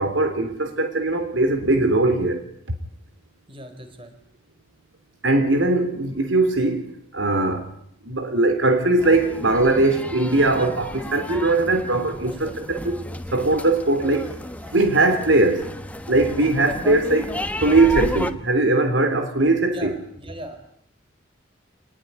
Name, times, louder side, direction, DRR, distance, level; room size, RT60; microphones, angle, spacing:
voice 1, 0.0-2.4 5.2-6.8 7.1-7.7 8.0-13.0 13.3-14.3 14.7-15.7 16.1-17.3 17.6-19.9, right 2 dB, 85° right, 3.4 m, -20 dB
voice 2, 3.5-4.1 19.7-20.6, right 1 dB, 30° right, 4.2 m, -38 dB
sound 1, 9.0-18.3, left 1 dB, 10° left, 1.3 m, -33 dB
26.0 x 20.0 x 9.5 m
head